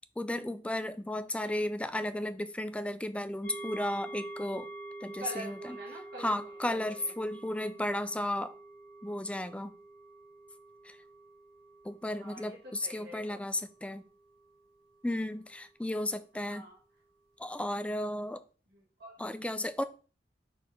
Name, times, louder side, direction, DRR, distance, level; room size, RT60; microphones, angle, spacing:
voice 1, 0.2-4.7 5.0-5.6 6.2-8.5 9.0-9.7 10.8-11.0 11.8-14.0 15.0-16.6 17.4-18.4 19.2-19.8, left 1 dB, 5° left, 0.4 m, -34 dB
sound 1, 3.4-15.1 15.5-15.6, right 2 dB, 60° left, 1.7 m, -47 dB
voice 2, 5.2-7.1 12.1-13.4 16.4-16.8 18.7-19.2, right 1 dB, 65° right, 1.7 m, -46 dB
4.5 x 4.2 x 5.2 m
head